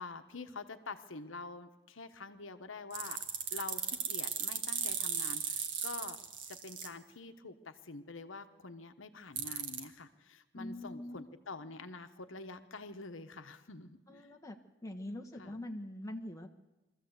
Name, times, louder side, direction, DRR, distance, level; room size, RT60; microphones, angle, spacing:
voice 1, 0.0-3.2 3.5-6.2 6.5-14.3 15.4-15.5, left 3 dB, 80° left, 8 dB, 1.1 m, -46 dB
sound 1, 2.9-6.9 9.4-9.8, right 7 dB, 70° right, 1.8 m, -36 dB
voice 2, 10.5-11.3 14.1-14.6 14.8-16.5, left 1 dB, 15° left, 3 dB, 1.4 m, -43 dB
23.0 x 14.0 x 8.1 m, 1.1 s
head